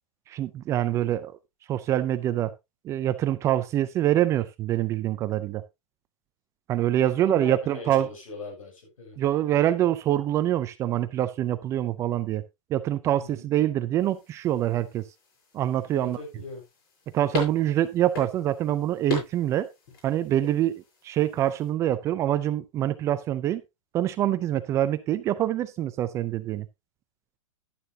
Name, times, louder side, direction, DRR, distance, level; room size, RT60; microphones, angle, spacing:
voice 1, 0.3-1.3 1.7-2.5 2.8-5.6 6.7-8.1 9.2-12.4 12.7-15.0 15.5-16.2 17.1-19.7 20.0-23.6 23.9-26.7, right 12 dB, 15° right, 0.4 m, -25 dB
voice 2, 7.1-9.2 13.2-13.5 15.9-16.6, left 3 dB, 80° left, 6.2 m, -40 dB
sound 1, 14.0-21.7, left 4 dB, 45° left, 6.9 m, -39 dB
11.0 x 9.4 x 2.7 m
hypercardioid pair, 150°, 17 cm